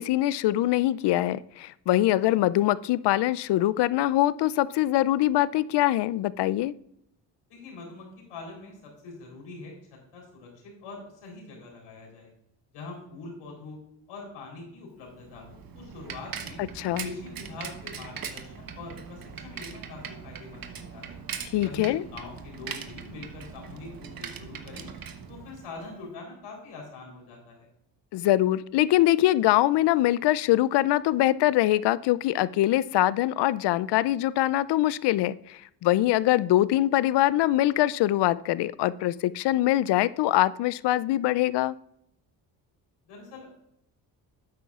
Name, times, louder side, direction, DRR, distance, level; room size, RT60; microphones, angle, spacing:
voice 1, 0.0-6.7 16.8-17.1 21.5-22.0 28.1-41.7, left 14 dB, 55° left, 18 dB, 0.5 m, -23 dB
voice 2, 7.5-12.3 12.7-13.8 14.1-16.6 17.0-21.2 21.6-24.9 25.3-27.7 43.1-43.5, left 3 dB, 75° left, -1 dB, 3.9 m, -43 dB
Bicycle, 15.1-26.0, right 7 dB, 45° right, 1.1 m, -41 dB
11.5 x 8.6 x 2.4 m, 0.76 s
supercardioid pair, 60°, 49 cm